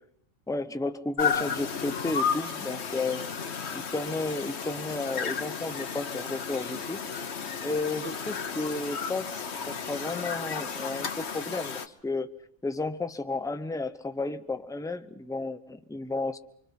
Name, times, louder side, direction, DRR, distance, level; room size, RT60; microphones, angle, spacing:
voice 1, 0.5-3.2 3.7-7.0 7.6-12.3 12.6-16.4, left 3 dB, 5° left, 10 dB, 0.6 m, -33 dB
sound 1, 1.2-11.9, left 6 dB, 65° left, 1.3 m, -33 dB
25.5 x 25.0 x 5.8 m, 0.77 s
omnidirectional pair, 1.2 m